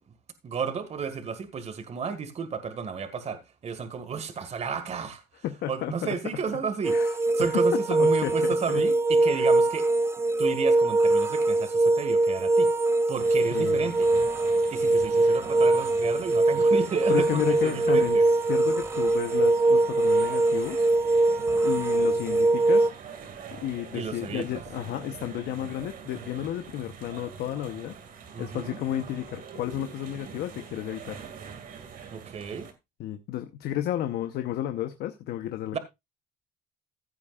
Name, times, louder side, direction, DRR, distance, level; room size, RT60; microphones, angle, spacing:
voice 1, 0.4-9.9 10.4-14.1 14.7-18.3 23.9-24.5 28.3-28.8 32.1-32.7 35.7-35.8, right 6 dB, 40° right, 1.8 m, -33 dB
voice 2, 5.4-6.2 6.9-7.6 7.9-8.8 9.4-9.5 13.5-13.9 17.1-18.2 18.5-20.9 21.6-22.9 23.5-28.0 28.4-31.2 33.0-35.8, left 12 dB, 75° left, 1.0 m, -32 dB
sound 1, 6.8-22.9, right 2 dB, 15° right, 0.6 m, -22 dB
sound 2, 13.2-32.7, right 7 dB, 55° right, 2.2 m, -44 dB
15.5 x 8.8 x 2.4 m
cardioid pair, 110°, 17 cm